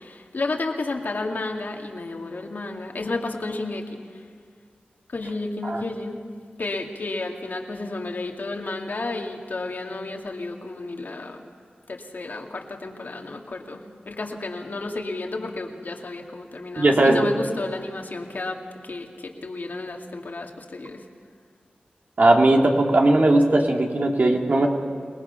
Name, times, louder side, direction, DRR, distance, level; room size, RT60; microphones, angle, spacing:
voice 1, 0.0-4.0 5.1-6.2 6.6-11.4 11.9-13.8 14.1-21.0, left 2 dB, 70° left, 1 dB, 2.2 m, -32 dB
voice 2, 16.8-17.2 22.2-24.7, right 2 dB, 60° right, 1 dB, 2.6 m, -18 dB
28.0 x 19.0 x 5.8 m, 2.1 s
wide cardioid pair, 55°, 3 cm